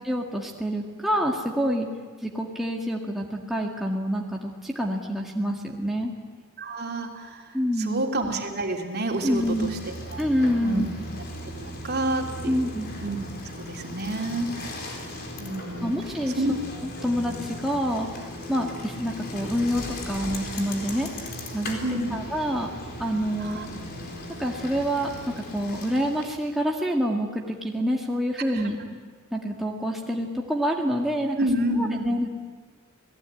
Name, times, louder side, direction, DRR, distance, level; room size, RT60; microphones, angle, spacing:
voice 1, 0.0-1.9 2.2-6.1 7.5-8.0 9.2-9.8 10.2-10.9 12.4-12.9 15.8-16.4 16.8-18.1 18.5-21.1 21.5-22.7 23.0-23.6 24.4-28.8 29.3-31.4 31.8-32.3, equal, ahead, -1 dB, 1.9 m, -27 dB
voice 2, 6.6-10.2 10.6-10.9 11.5-12.6 13.0-13.2 13.6-15.0 15.4-15.9 16.4-16.6 17.0-17.1 21.8-22.2 23.4-23.7 28.5-28.7 31.4-32.1, right 1 dB, 50° right, 1 dB, 3.2 m, -29 dB
Bicycle, 9.0-26.5, left 1 dB, 45° left, 4.2 m, -37 dB
28.0 x 19.0 x 9.1 m, 1.6 s
head